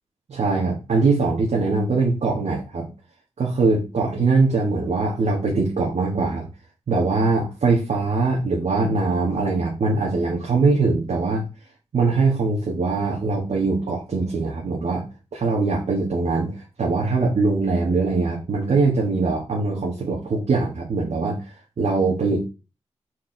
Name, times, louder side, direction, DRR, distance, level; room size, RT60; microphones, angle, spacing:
voice 1, 0.3-2.9 3.4-6.5 6.9-11.4 11.9-15.0 15.3-21.4 21.8-22.4, right 3 dB, 70° right, -2 dB, 1.5 m, -22 dB
4.7 x 4.6 x 4.5 m, 0.30 s
cardioid pair, 45°, 12 cm